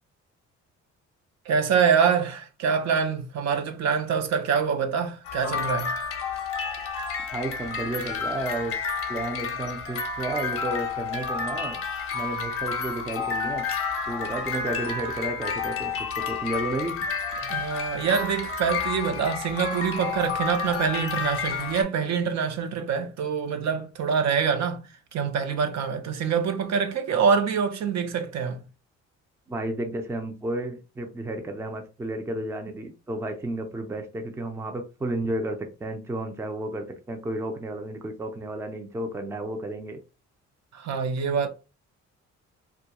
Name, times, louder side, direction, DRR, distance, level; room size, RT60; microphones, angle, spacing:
voice 1, 1.5-5.9 17.5-28.6 40.7-41.5, right 6 dB, 60° right, 0.5 m, -25 dB
sound 1, 5.3-21.8, left 5 dB, 50° left, 0.6 m, -30 dB
voice 2, 7.3-8.7 9.1-11.8 12.1-13.6 14.1-17.0 29.5-40.0, right 1 dB, 10° right, 0.4 m, -32 dB
2.3 x 2.2 x 2.8 m
cardioid pair, 90°, 30 cm